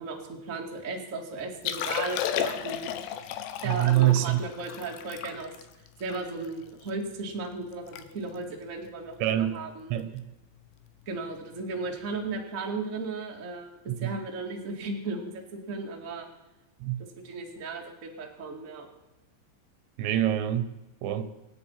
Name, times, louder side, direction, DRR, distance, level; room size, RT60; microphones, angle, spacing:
voice 1, 0.0-2.9 3.6-5.5 6.0-10.0 11.1-16.3 17.2-18.9, right 3 dB, 25° right, 1.7 m, -35 dB
Liquid, 1.5-6.9 7.4-7.5 7.7-8.0 8.3-8.6 9.2-9.4 10.8-10.9, left 9 dB, 80° left, 3.0 m, -34 dB
voice 2, 3.6-4.4 9.2-9.6 9.9-10.3 13.9-14.2 16.8-17.0 20.0-21.3, right 13 dB, 80° right, 3.3 m, -26 dB
26.5 x 9.0 x 5.8 m
omnidirectional pair, 5.2 m